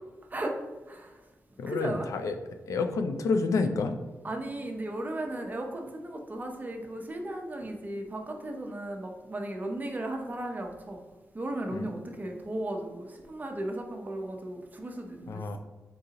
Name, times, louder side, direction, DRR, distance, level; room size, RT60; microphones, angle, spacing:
voice 1, 0.9-1.2 1.7-2.1 4.2-11.0 11.3-15.6, right 1 dB, 30° right, 3 dB, 0.7 m, -36 dB
voice 2, 1.6-2.4 2.7-4.0 11.7-11.9 15.3-15.6, left 4 dB, 75° left, 7 dB, 0.4 m, -29 dB
3.9 x 3.8 x 2.8 m, 1.2 s
cardioid pair, 80°, 6 cm